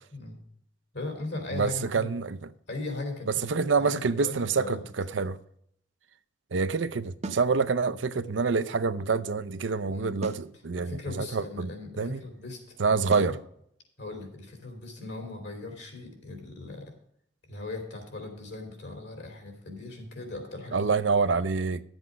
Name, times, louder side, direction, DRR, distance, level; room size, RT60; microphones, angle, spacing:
voice 1, 0.9-2.1 2.7-4.8 9.9-10.1 10.7-13.4 14.0-16.9 17.5-20.9, left 2 dB, 70° left, 3.3 m, -39 dB
voice 2, 1.5-2.4 3.4-5.4 6.5-11.7 12.0-12.2 12.8-13.3 20.7-21.8, right 4 dB, 85° right, 0.6 m, -27 dB
sound 1, 7.2-7.5 10.2-10.5 13.1-13.4, right 2 dB, 35° right, 0.7 m, -36 dB
11.0 x 8.0 x 5.2 m
head